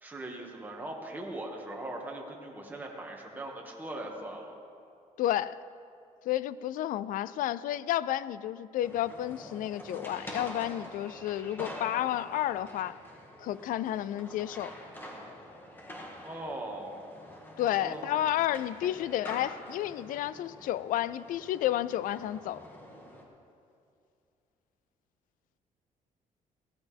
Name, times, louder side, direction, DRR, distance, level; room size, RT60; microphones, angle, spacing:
voice 1, 0.0-4.5 16.2-17.0 17.7-18.2, right 1 dB, 15° right, -1 dB, 2.0 m, -40 dB
voice 2, 5.2-5.6 6.3-13.0 13.4-14.7 17.6-22.6, left 12 dB, 75° left, 17 dB, 0.4 m, -31 dB
sound 1, 8.8-23.2, left 1 dB, 15° left, 2.0 m, -46 dB
17.5 x 14.0 x 3.5 m, 2.5 s
cardioid pair, 120°, 14 cm